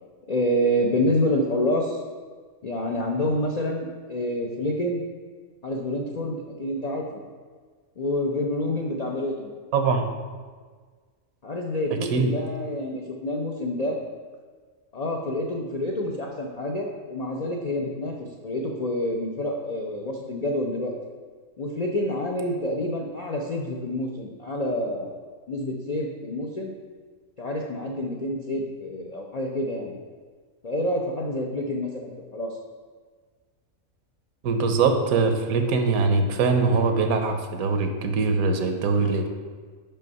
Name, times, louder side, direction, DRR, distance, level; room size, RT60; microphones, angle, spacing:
voice 1, 0.3-2.0 2.6-5.0 5.6-7.2 8.0-9.5 11.4-14.0 14.9-18.1 18.4-20.9 21.6-25.2 25.5-26.7 27.4-29.9 30.6-32.6, left 1 dB, 75° left, 0 dB, 0.3 m, -27 dB
voice 2, 9.7-10.1 12.1-12.3 34.4-39.3, right 4 dB, 75° right, 6 dB, 1.1 m, -22 dB
5.6 x 5.4 x 5.3 m, 1.5 s
omnidirectional pair, 1.6 m